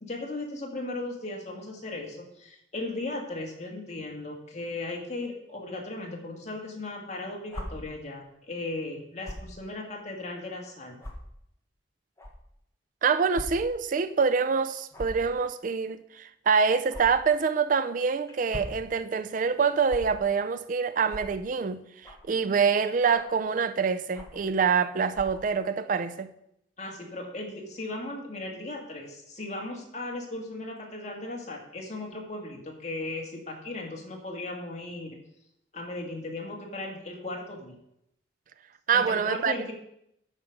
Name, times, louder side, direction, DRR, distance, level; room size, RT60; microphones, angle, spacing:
voice 1, 0.0-11.0 26.8-35.2 35.7-37.8 38.9-39.7, left 2 dB, 40° left, 2.0 m, -37 dB
sound 1, 7.5-7.7 9.2-9.5 10.2-10.3 11.0-11.1 12.2-12.3 13.3-13.5 13.8-13.9 14.9-15.2 16.9-17.0 18.3-18.8 19.9-20.0 21.0-21.3 22.0-22.3 23.1-23.4 24.1-24.4 25.1-25.4, left 1 dB, 15° left, 1.4 m, -39 dB
voice 2, 13.0-26.3 38.9-39.7, right 5 dB, 50° right, 0.4 m, -26 dB
9.6 x 5.0 x 6.5 m
head